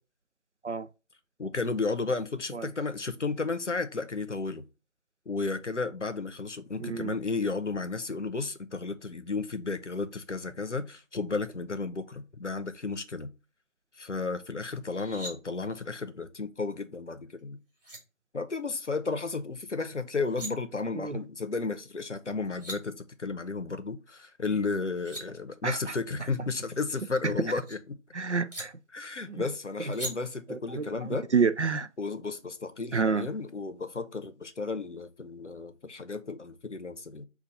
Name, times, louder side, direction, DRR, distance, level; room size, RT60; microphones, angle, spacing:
voice 1, 1.4-4.6 5.3-13.3 14.0-17.6 18.3-22.9 23.2-28.0 28.9-31.3 32.0-37.2, left 4 dB, 65° left, 0.7 m, -33 dB
voice 2, 6.8-7.1 21.0-21.2 25.6-25.8 28.1-28.7 30.5-30.9 31.3-31.9 32.9-33.3, right 5 dB, 60° right, 0.5 m, -28 dB
sound 1, 14.8-15.3 17.4-17.5 17.8-18.0 20.1-20.5 22.2-22.3 22.4-22.8 24.7-25.2 26.7-27.8 28.5-28.6 29.9-30.1, right 1 dB, 45° right, 2.7 m, -40 dB
5.7 x 2.3 x 4.0 m
figure-of-eight pair, 175°, 39 cm